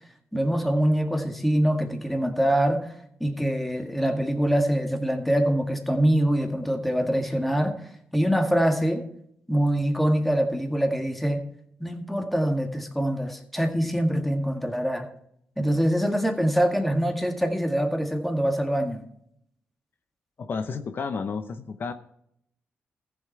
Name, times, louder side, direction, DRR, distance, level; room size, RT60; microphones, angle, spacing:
voice 1, 0.3-2.9 3.2-7.8 8.1-9.0 9.5-11.5 11.8-15.1 15.6-19.0, equal, 5° left, 4 dB, 1.8 m, -24 dB
voice 2, 20.4-21.9, left 5 dB, 55° left, 8 dB, 0.7 m, -31 dB
14.5 x 7.2 x 4.6 m, 0.73 s
cardioid pair, 80°, 5 cm